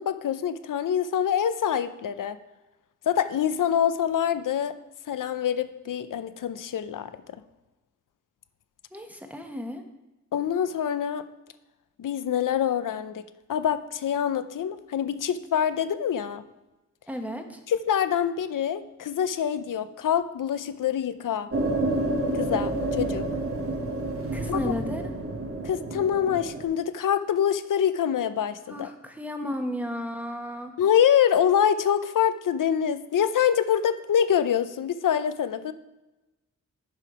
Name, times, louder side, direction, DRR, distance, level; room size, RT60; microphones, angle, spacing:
voice 1, 0.0-2.4 3.1-4.7 5.1-7.1 10.3-11.2 12.0-13.2 13.5-16.4 17.7-21.5 22.4-23.2 24.5-24.7 25.6-28.9 30.8-35.7, left 9 dB, 75° left, 12 dB, 0.6 m, -25 dB
voice 2, 8.9-9.8 17.1-17.6 24.3-25.1 28.7-30.7, left 1 dB, 5° right, 4 dB, 1.1 m, -33 dB
sound 1, 21.5-26.6, right 2 dB, 45° right, 1.3 m, -29 dB
10.5 x 5.3 x 4.8 m, 1.0 s
wide cardioid pair, 95°, 32 cm